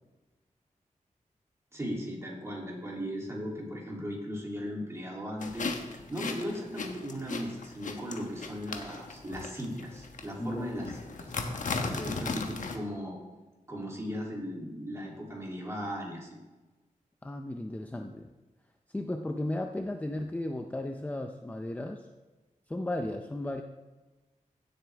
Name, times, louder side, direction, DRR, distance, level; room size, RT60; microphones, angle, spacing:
voice 1, 1.7-11.3 11.8-13.2 13.7-16.4, equal, 20° right, -3 dB, 2.9 m, -37 dB
sound 1, 5.4-12.8, left 4 dB, 65° left, 1.1 m, -37 dB
voice 2, 11.8-12.3 17.2-18.3 18.9-22.1 22.7-23.6, left 1 dB, 10° left, 4 dB, 0.5 m, -35 dB
16.0 x 7.8 x 3.5 m, 1.2 s
wide cardioid pair, 140°, 14 cm